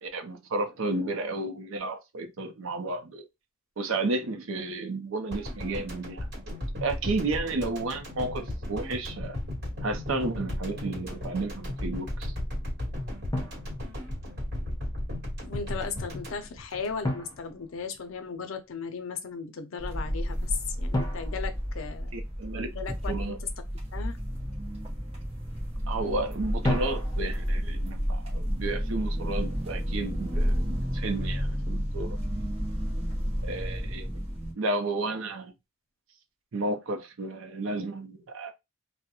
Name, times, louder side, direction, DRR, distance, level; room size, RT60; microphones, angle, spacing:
voice 1, 0.0-3.2 3.8-9.4 9.8-12.3 22.1-22.7 23.1-23.4 25.9-32.2 33.4-34.3 34.5-35.6 36.5-38.5, right 2 dB, 75° right, 0.5 m, -32 dB
sound 1, 5.3-17.5 17.8-17.9, left 1 dB, 55° right, 1.3 m, -35 dB
Drum, 10.9-11.1 13.3-14.5 17.0-18.4 20.9-22.6 26.6-27.6, left 1 dB, 20° left, 0.5 m, -34 dB
voice 2, 15.4-22.2 22.6-23.4 23.9-24.2, left 5 dB, 75° left, 0.5 m, -36 dB
sound 2, 19.8-34.5, equal, 30° right, 0.9 m, -31 dB
2.3 x 2.1 x 2.8 m
head